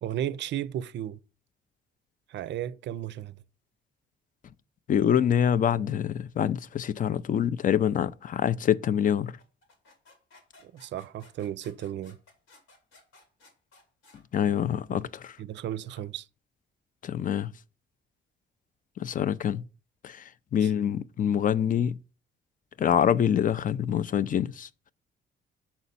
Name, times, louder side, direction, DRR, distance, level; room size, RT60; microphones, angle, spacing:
voice 1, 0.0-1.2 2.3-3.4 10.6-12.2 15.4-16.3 20.6-20.7, right 11 dB, 65° right, 0.4 m, -34 dB
voice 2, 4.9-9.4 14.3-15.4 17.0-17.5 19.0-19.7 20.0-22.0 22.8-24.7, left 9 dB, 45° left, 0.4 m, -25 dB
sound 1, 9.4-14.2, left 2 dB, 90° left, 2.0 m, -57 dB
6.0 x 4.1 x 4.0 m
cardioid pair, 90°, 20 cm